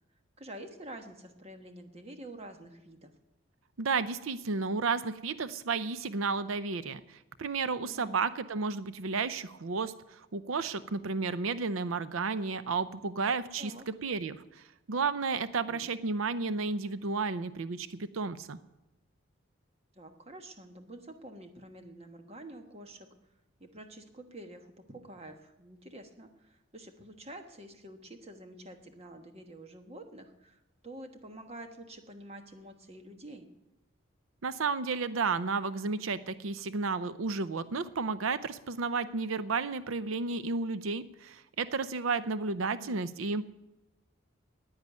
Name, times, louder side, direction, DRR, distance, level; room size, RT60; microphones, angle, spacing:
voice 1, 0.4-3.1 7.8-8.2 13.6-13.9 15.6-15.8 19.9-23.1 23.6-33.5 42.7-43.0, right 1 dB, 30° right, 6 dB, 1.3 m, -48 dB
voice 2, 3.8-13.7 14.0-18.6 34.4-43.4, right 4 dB, 85° right, 14 dB, 0.6 m, -32 dB
10.5 x 9.7 x 9.4 m, 0.97 s
head